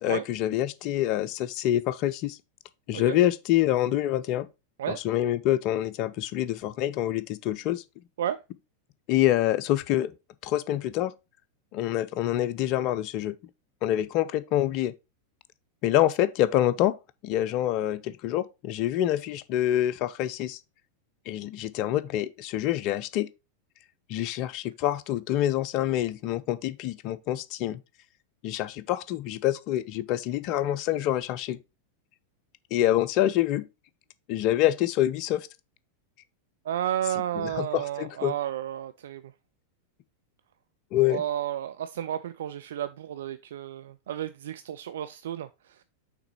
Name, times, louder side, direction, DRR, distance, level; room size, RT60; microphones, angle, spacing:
voice 1, 0.0-2.4 2.9-4.5 4.9-7.8 9.1-10.1 10.4-11.1 11.7-13.3 13.8-14.9 15.8-17.0 17.2-20.6 21.3-23.3 24.1-27.8 28.4-31.6 32.7-33.7 34.3-35.5 37.4-38.3 40.9-41.2, left 13 dB, 40° left, 0.5 m, -26 dB
voice 2, 36.6-39.2 41.1-45.8, right 10 dB, 60° right, 0.3 m, -32 dB
5.9 x 3.8 x 4.5 m
figure-of-eight pair, 90°, 0 cm